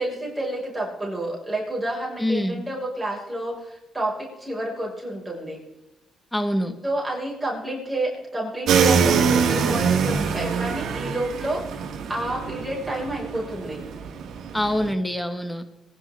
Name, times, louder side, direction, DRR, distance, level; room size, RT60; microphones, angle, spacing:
voice 1, 0.0-5.6 6.8-13.8, right 1 dB, 10° right, -3 dB, 5.3 m, -29 dB
voice 2, 2.2-2.7 6.3-6.8 14.5-15.6, equal, 5° left, 9 dB, 1.6 m, -25 dB
sound 1, 8.7-14.9, right 6 dB, 70° right, 2.1 m, -24 dB
23.0 x 11.0 x 3.6 m, 0.98 s
cardioid pair, 90°, 0 cm